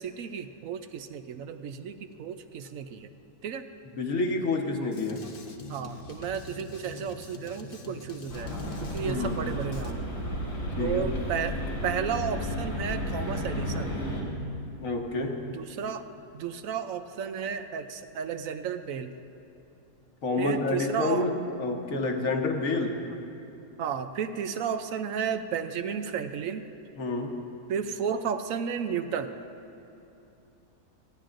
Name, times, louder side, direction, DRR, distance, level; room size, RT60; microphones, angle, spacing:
voice 1, 0.0-3.1 3.4-3.7 5.7-10.0 10.8-13.9 15.4-16.1 16.3-19.1 20.4-21.3 23.1-23.2 23.8-26.6 27.7-29.3, right 7 dB, 70° right, 9 dB, 0.9 m, -33 dB
voice 2, 4.0-5.2 9.0-9.4 10.8-11.1 14.8-15.3 20.2-21.3 21.6-22.9 27.0-27.3, left 3 dB, 60° left, 2 dB, 1.5 m, -28 dB
Drum kit, 4.9-9.9, left 3 dB, 45° left, 0.8 m, -44 dB
sound 1, 8.3-14.2, equal, 85° left, 3.2 m, -33 dB
29.5 x 10.5 x 2.6 m, 2.9 s
omnidirectional pair, 1.6 m